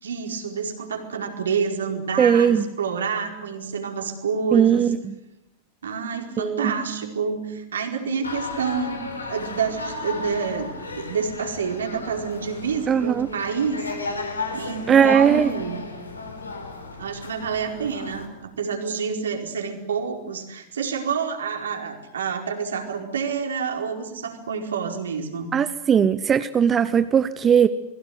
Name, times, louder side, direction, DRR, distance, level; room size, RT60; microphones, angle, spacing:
voice 1, 0.0-4.9 5.8-9.0 9.3-13.9 14.5-15.8 17.0-25.5, right 6 dB, 70° right, 3 dB, 4.7 m, -28 dB
voice 2, 2.2-2.6 4.5-5.1 6.4-6.6 12.9-13.3 14.9-15.5 25.5-27.7, right 8 dB, 25° right, 13 dB, 0.9 m, -18 dB
sound 1, 8.2-18.3, left 3 dB, 80° left, 4.0 m, -34 dB
28.5 x 21.5 x 8.0 m, 0.88 s
figure-of-eight pair, 90°, 0 cm